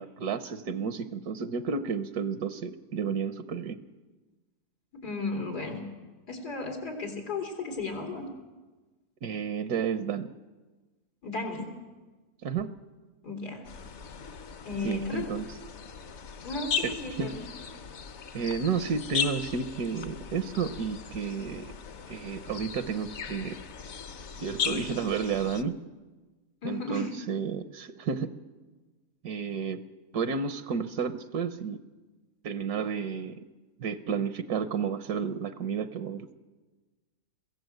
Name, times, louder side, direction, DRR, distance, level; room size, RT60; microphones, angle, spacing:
voice 1, 0.0-3.8 9.2-10.3 12.4-12.8 14.8-15.5 16.8-17.4 18.3-21.7 22.1-23.6 24.4-25.8 26.6-28.3 29.2-29.8 30.1-31.8 32.4-33.4 33.8-36.3, right 6 dB, 75° right, 11 dB, 1.3 m, -31 dB
voice 2, 5.0-5.8 6.3-8.3 11.2-11.7 13.2-13.7 14.6-15.3 16.4-17.4 26.6-27.1, left 3 dB, 90° left, 1 dB, 3.8 m, -34 dB
sound 1, 13.6-25.6, left 7 dB, 50° left, 1.1 m, -37 dB
22.5 x 15.5 x 7.8 m, 1.3 s
omnidirectional pair, 1.7 m